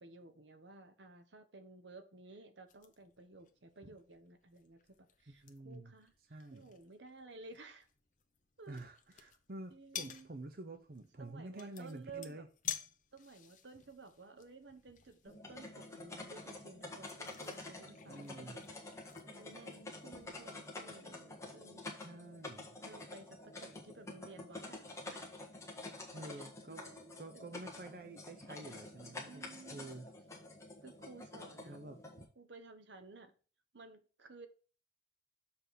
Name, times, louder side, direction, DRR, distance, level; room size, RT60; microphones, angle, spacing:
voice 1, 0.0-7.9 8.6-8.8 9.7-10.3 11.2-12.4 13.1-22.1 22.8-25.4 26.3-27.6 29.2-29.9 30.8-31.8 32.4-33.3 33.7-34.5, right 3 dB, 80° right, 1.1 m, -55 dB
sound 1, 2.7-20.7, left 10 dB, 45° left, 0.8 m, -52 dB
voice 2, 5.3-5.9 6.3-6.7 8.7-12.5 18.1-18.6 22.0-22.8 26.1-26.8 27.2-29.4 29.7-30.1 31.7-32.2, right 2 dB, 50° right, 0.7 m, -49 dB
sound 2, 15.3-32.3, left 2 dB, 15° left, 1.4 m, -49 dB
6.8 x 3.7 x 6.4 m
head